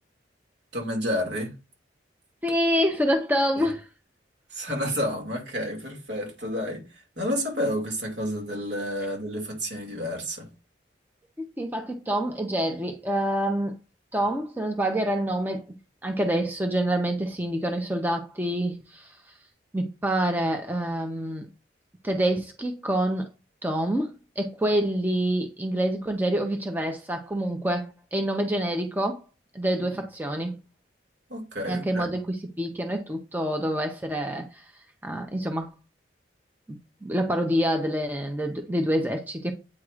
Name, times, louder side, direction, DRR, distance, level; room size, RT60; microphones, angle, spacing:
voice 1, 0.7-1.5 3.6-3.7 4.5-10.5 31.3-32.1, equal, 70° right, 2.2 m, -30 dB
voice 2, 2.4-3.8 11.6-13.7 14.1-15.7 16.0-19.1 19.7-21.5 22.0-23.3 23.6-29.2 29.5-30.6 31.7-34.6 35.0-35.7 36.7-39.5, right 1 dB, 10° right, 0.6 m, -27 dB
8.5 x 4.7 x 2.4 m
head